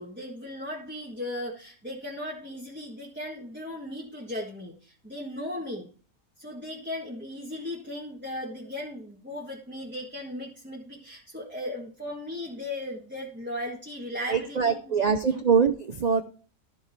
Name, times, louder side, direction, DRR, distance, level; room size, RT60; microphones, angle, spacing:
voice 1, 0.0-5.9 6.4-15.4, left 1 dB, 5° right, -4 dB, 1.5 m, -37 dB
voice 2, 14.3-16.2, right 6 dB, 75° right, 7 dB, 0.3 m, -23 dB
13.0 x 4.7 x 4.5 m, 0.40 s
omnidirectional pair, 1.5 m